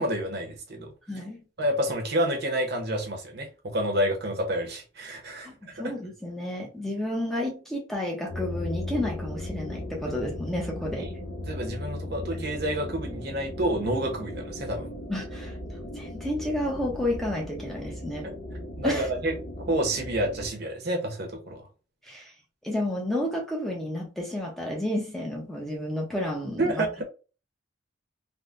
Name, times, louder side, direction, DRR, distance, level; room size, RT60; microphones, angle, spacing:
voice 1, 0.0-0.9 1.6-5.9 11.0-11.1 11.5-14.9 18.8-21.7 26.6-27.0, right 1 dB, 55° right, 0.9 m, -29 dB
voice 2, 1.1-1.4 5.5-11.1 12.3-12.4 15.1-15.5 15.9-18.3 18.8-19.1 22.0-22.3 22.6-27.0, left 1 dB, ahead, 0.6 m, -31 dB
sound 1, 8.3-20.5, left 1 dB, 65° left, 0.6 m, -37 dB
3.5 x 2.1 x 2.5 m
head